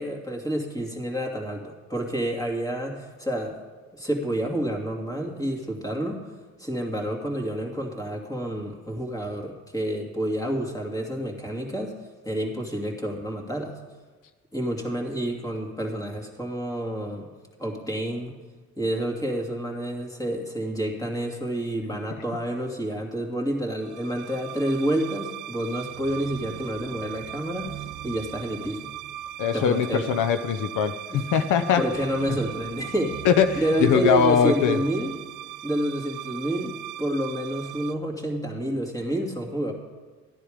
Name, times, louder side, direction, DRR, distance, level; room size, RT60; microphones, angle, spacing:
voice 1, 0.0-3.6 3.9-6.2 6.6-11.9 12.2-13.7 14.5-17.3 17.6-18.3 18.8-28.8 29.5-30.2 31.1-31.2 31.8-33.1 33.6-35.1 35.6-39.7, right 1 dB, 10° left, 0 dB, 2.5 m, -29 dB
sound 1, 23.8-37.9, right 12 dB, 85° right, 0.7 m, -39 dB
voice 2, 29.4-31.8 33.2-34.8, left 7 dB, 90° left, 9 dB, 0.7 m, -21 dB
14.5 x 10.0 x 5.1 m, 1.4 s
cardioid pair, 90°, 30 cm